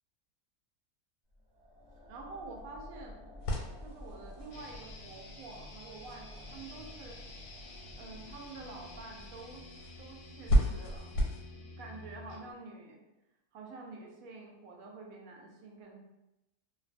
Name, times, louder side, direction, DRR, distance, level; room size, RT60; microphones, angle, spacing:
sound 1, 1.3-10.6, left 1 dB, 25° right, 1.2 m, -52 dB
voice 1, 2.1-3.2 3.8-7.2 8.0-9.6 10.0-11.2 11.6-13.0 13.5-16.0, right 3 dB, 70° right, 0 dB, 1.0 m, -48 dB
sound 2, 3.4-11.4, equal, 85° left, 1.1 m, -35 dB
sound 3, 4.5-12.5, left 2 dB, 65° left, 0.8 m, -50 dB
2.6 x 2.2 x 2.5 m, 0.94 s
omnidirectional pair, 1.6 m